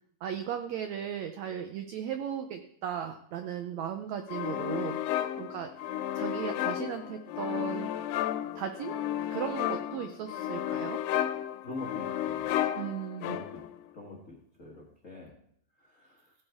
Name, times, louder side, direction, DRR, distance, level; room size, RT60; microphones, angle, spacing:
voice 1, 0.2-5.0 5.4-5.7 6.1-7.9 8.5-9.0 9.3-11.0 12.7-13.4, right 9 dB, 85° right, 7 dB, 1.5 m, -36 dB
sound 1, 4.3-13.8, left 11 dB, 80° left, 2.2 m, -33 dB
voice 2, 11.6-12.7 13.2-13.6 13.9-15.4 15.8-16.3, left 2 dB, 60° left, -2 dB, 0.8 m, -45 dB
16.0 x 8.8 x 3.5 m, 0.66 s
omnidirectional pair, 4.0 m